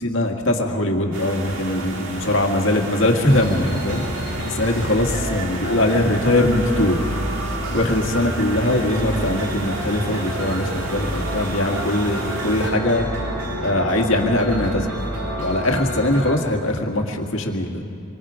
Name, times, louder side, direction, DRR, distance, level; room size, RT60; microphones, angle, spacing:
voice 1, 0.0-4.0 4.4-7.2 7.7-13.0 13.6-14.9 15.4-17.8, left 1 dB, 60° left, 2 dB, 2.0 m, -21 dB
sound 1, 1.1-12.7, right 2 dB, 60° right, 2.2 m, -33 dB
sound 2, 3.3-16.4, equal, 85° right, 4.1 m, -29 dB
27.0 x 24.5 x 5.1 m, 2.4 s
head